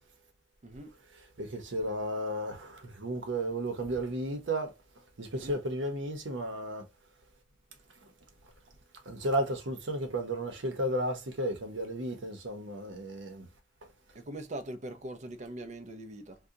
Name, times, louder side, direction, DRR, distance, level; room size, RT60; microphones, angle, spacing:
voice 1, 0.6-0.9 5.3-5.6 14.1-16.4, right 1 dB, 40° right, 0.6 m, -42 dB
voice 2, 1.4-4.7 5.2-6.9 9.0-13.5, right 1 dB, 70° right, 0.9 m, -33 dB
2.8 x 2.3 x 3.6 m
head